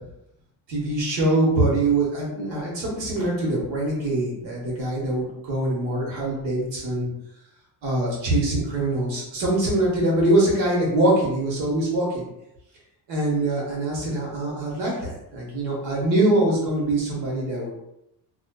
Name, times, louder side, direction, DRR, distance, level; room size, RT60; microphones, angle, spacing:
voice 1, 0.7-7.1 7.8-12.3 13.1-17.9, right 1 dB, 85° right, -4 dB, 1.2 m, -23 dB
2.4 x 2.4 x 2.2 m, 0.83 s
cardioid pair, 130°, 44 cm